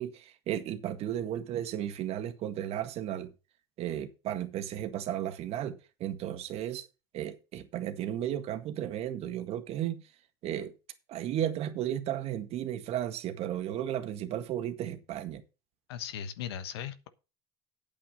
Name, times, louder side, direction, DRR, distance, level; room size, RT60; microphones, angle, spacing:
voice 1, 0.0-3.3 3.8-6.9 7.1-10.0 10.4-10.7 11.1-15.4, right 11 dB, 50° right, 1.8 m, -34 dB
voice 2, 15.9-17.1, left 9 dB, 80° left, 1.2 m, -38 dB
8.7 x 8.7 x 5.4 m
hypercardioid pair, 85°, 13 cm